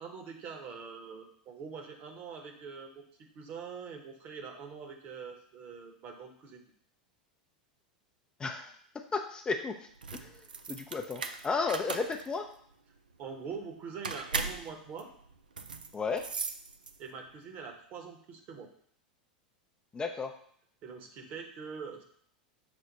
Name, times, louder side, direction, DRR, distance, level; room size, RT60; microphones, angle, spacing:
voice 1, 0.0-3.0 3.3-6.6 13.2-15.1 17.0-18.7 20.8-22.0, right 5 dB, 45° right, 3 dB, 1.0 m, -44 dB
voice 2, 8.4-8.7 9.1-10.3 10.7-12.5 15.9-16.3 19.9-20.3, left 4 dB, 20° left, 4 dB, 0.4 m, -33 dB
sound 1, 9.9-17.2, right 4 dB, 85° right, 0.3 m, -39 dB
6.2 x 2.1 x 4.0 m, 0.62 s
hypercardioid pair, 90°, 5 cm